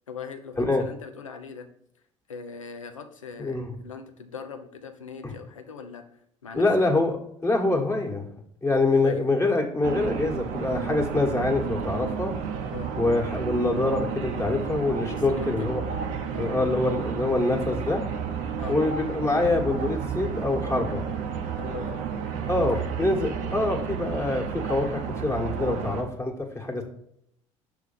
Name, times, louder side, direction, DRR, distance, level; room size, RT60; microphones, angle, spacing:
voice 1, 0.1-1.7 2.3-6.6 8.9-9.3 12.7-12.9 15.1-15.8 16.3-16.5 18.6-18.8 21.6-22.0 22.6-22.9 25.6-25.9, left 5 dB, 85° left, 7 dB, 0.6 m, -40 dB
voice 2, 3.4-3.7 5.2-5.3 6.5-7.2 7.4-8.3 8.6-12.3 13.0-15.8 16.4-18.0 18.7-21.0 22.5-26.8, left 2 dB, 15° left, 2 dB, 1.4 m, -25 dB
sound 1, 9.8-26.0, right 7 dB, 55° right, 0.8 m, -32 dB
6.3 x 3.4 x 5.6 m, 0.72 s
figure-of-eight pair, 60°, 16 cm